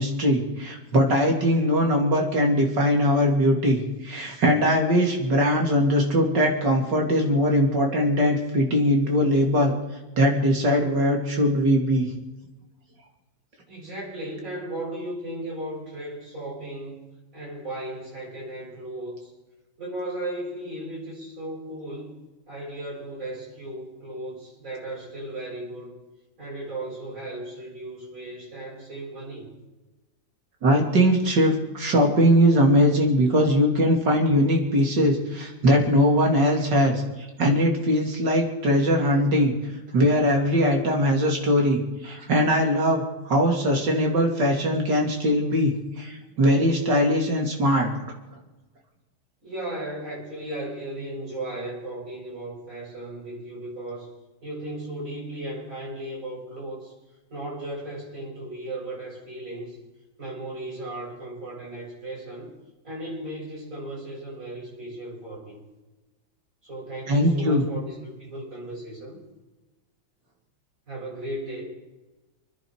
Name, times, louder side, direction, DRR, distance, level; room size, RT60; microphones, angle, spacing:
voice 1, 0.0-9.8 10.2-12.1 30.6-37.0 37.4-39.5 39.9-47.9 67.1-67.6, equal, 55° right, 1 dB, 3.5 m, -21 dB
voice 2, 13.7-17.0 17.3-19.3 19.8-22.2 22.5-26.0 26.4-29.5 49.4-54.1 54.4-56.9 57.3-59.8 60.2-62.5 62.8-65.6 66.6-69.2 70.9-71.6, right 1 dB, 40° right, -6 dB, 7.7 m, -36 dB
29.5 x 10.0 x 4.8 m, 1.1 s
omnidirectional pair, 2.2 m